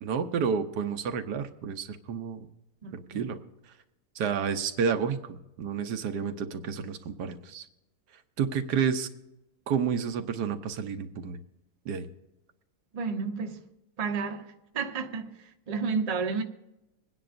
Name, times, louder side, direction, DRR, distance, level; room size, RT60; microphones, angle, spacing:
voice 1, 0.0-2.5 2.9-3.4 4.1-7.7 8.4-9.1 9.7-11.4 11.8-12.1, right 6 dB, 85° right, 1.4 m, -30 dB
voice 2, 2.8-3.3 12.9-13.6 14.0-16.4, right 5 dB, 30° right, 0.8 m, -32 dB
26.0 x 9.8 x 2.5 m
omnidirectional pair, 1.7 m